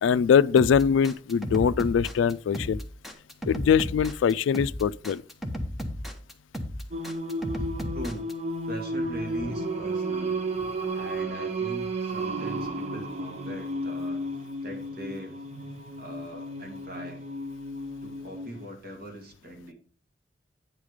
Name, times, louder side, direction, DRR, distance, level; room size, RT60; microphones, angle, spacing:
voice 1, 0.0-2.8 3.5-5.2, left 7 dB, 85° left, 0.3 m, -22 dB
sound 1, 0.6-8.3, equal, ahead, 1.0 m, -34 dB
Singing, 6.9-18.6, right 2 dB, 35° right, 0.9 m, -33 dB
voice 2, 7.9-8.3 8.6-10.4 10.9-14.2 14.6-15.4 16.0-17.2 18.0-19.7, equal, 55° right, 2.4 m, -40 dB
sound 2, 9.0-14.9, right 1 dB, 75° right, 3.1 m, -49 dB
9.5 x 4.9 x 5.0 m
head